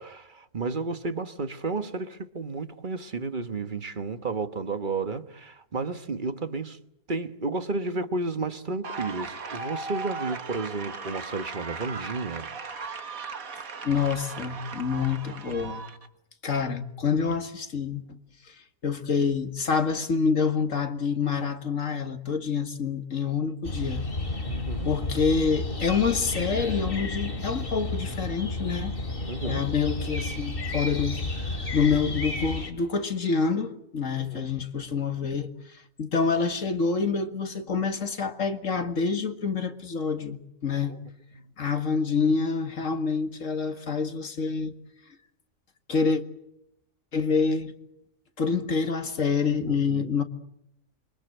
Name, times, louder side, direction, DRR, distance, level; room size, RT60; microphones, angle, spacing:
voice 1, 0.0-6.8 7.1-12.5 24.4-24.9 29.3-29.6 34.2-34.5 40.9-41.5 49.6-50.1, right 3 dB, 35° right, 1.4 m, -32 dB
sound 1, 8.8-16.1, right 4 dB, 70° right, 2.1 m, -37 dB
voice 2, 13.8-15.8 16.4-18.0 18.5-18.6 18.8-24.1 24.9-28.9 29.4-41.0 41.6-44.7 45.9-46.2 47.1-47.7 48.4-50.2, left 5 dB, 60° left, 2.2 m, -27 dB
sound 2, 23.6-32.7, left 2 dB, 40° left, 3.1 m, -32 dB
27.0 x 24.0 x 8.0 m
omnidirectional pair, 1.5 m